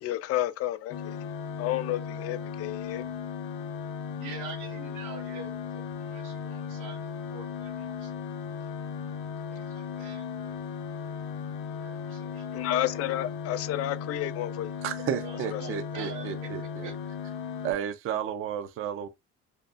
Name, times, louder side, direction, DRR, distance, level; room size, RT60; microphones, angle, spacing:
voice 1, 0.0-1.3 1.6-3.1 12.5-14.7 15.5-15.8, left 13 dB, 55° left, 0.4 m, -31 dB
sound 1, 0.9-17.7, left 6 dB, 75° left, 0.8 m, -36 dB
voice 2, 4.2-8.3 9.5-10.3 11.8-12.5 15.2-16.5 16.8-16.9, right 6 dB, 90° right, 1.5 m, -45 dB
voice 3, 14.8-16.9 17.6-19.1, right 9 dB, 45° right, 0.5 m, -32 dB
5.1 x 2.3 x 2.4 m
cardioid pair, 165°, 29 cm